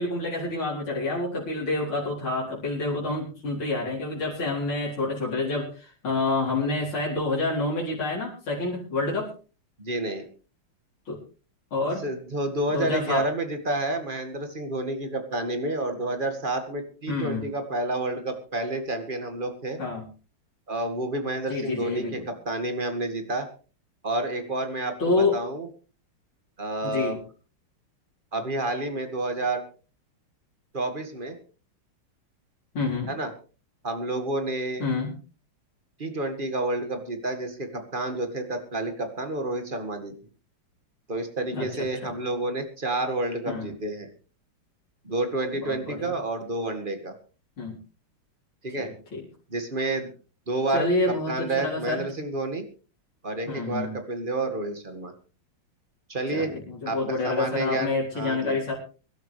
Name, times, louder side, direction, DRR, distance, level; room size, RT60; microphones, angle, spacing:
voice 1, 0.0-9.3 11.1-11.2 11.7-12.0 12.7-13.3 17.1-17.5 19.8-20.1 21.5-22.2 25.0-25.4 26.8-27.2 32.7-33.1 34.8-35.1 41.5-41.7 43.5-43.7 45.6-46.1 47.6-47.8 48.8-49.2 50.7-52.1 53.5-53.9 56.3-58.7, left 3 dB, 75° left, -6 dB, 5.0 m, -28 dB
voice 2, 9.8-10.3 12.0-19.8 20.7-23.5 24.0-25.7 26.6-27.2 28.3-29.6 30.7-31.4 33.1-33.3 33.8-34.8 36.0-40.1 41.1-44.1 45.0-47.1 48.6-48.9 49.5-50.1 50.5-52.6 53.2-55.1 56.1-56.5 56.9-58.6, right 2 dB, 25° right, 7 dB, 2.0 m, -29 dB
23.5 x 12.0 x 3.3 m, 0.36 s
omnidirectional pair, 2.3 m